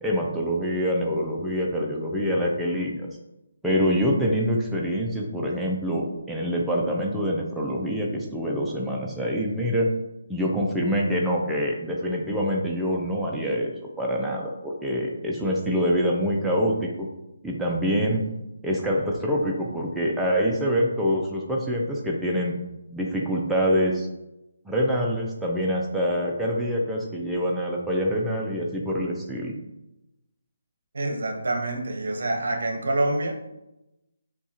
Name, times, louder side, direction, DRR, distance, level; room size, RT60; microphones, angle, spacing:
voice 1, 0.0-3.1 3.6-9.9 10.3-13.7 14.0-17.1 17.4-18.2 18.6-22.5 22.9-24.1 24.7-29.5, equal, ahead, -4 dB, 0.4 m, -25 dB
voice 2, 30.9-33.3, right 2 dB, 70° right, 4 dB, 0.9 m, -26 dB
6.9 x 2.4 x 2.8 m, 0.92 s
hypercardioid pair, 165°, 0 cm